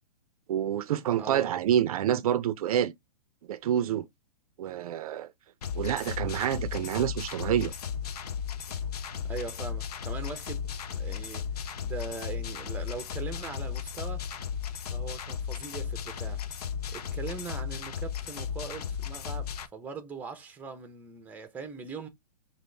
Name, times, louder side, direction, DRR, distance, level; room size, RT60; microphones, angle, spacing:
voice 1, 0.5-2.9 3.5-4.1 4.6-5.3 5.7-7.7, right 10 dB, 60° right, 0.5 m, -27 dB
voice 2, 1.2-1.5 9.3-11.5 11.8-14.3 14.9-16.4 16.9-22.1, right 4 dB, 10° right, 0.7 m, -41 dB
sound 1, 5.6-19.7, left 7 dB, 65° left, 0.7 m, -35 dB
5.1 x 2.6 x 3.3 m
hypercardioid pair, 135°, 21 cm